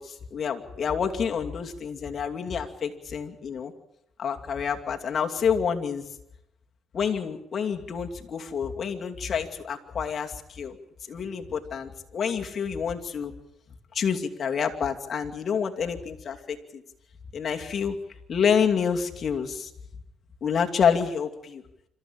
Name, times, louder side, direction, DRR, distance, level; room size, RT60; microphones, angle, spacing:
voice 1, 0.0-3.7 4.2-6.0 6.9-10.8 11.1-13.3 13.9-16.8 17.3-18.0 18.3-19.7 20.4-21.6, left 7 dB, 50° left, 3 dB, 2.6 m, -28 dB
26.5 x 14.0 x 8.8 m, 0.81 s
cardioid pair, 90°, 0 cm